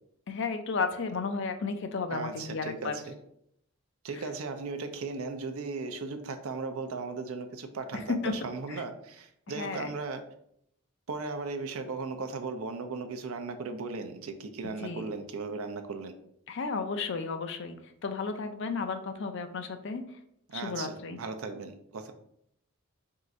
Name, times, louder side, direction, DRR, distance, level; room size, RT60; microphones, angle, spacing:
voice 1, 0.3-3.0 7.9-8.3 9.6-9.9 14.6-15.0 16.5-17.8 18.0-20.0 20.5-21.2, left 4 dB, 55° left, 7 dB, 0.4 m, -33 dB
voice 2, 2.1-3.2 4.0-10.2 11.1-16.1 20.5-22.1, right 4 dB, 70° right, 6 dB, 0.5 m, -37 dB
3.7 x 2.5 x 4.2 m, 0.74 s
head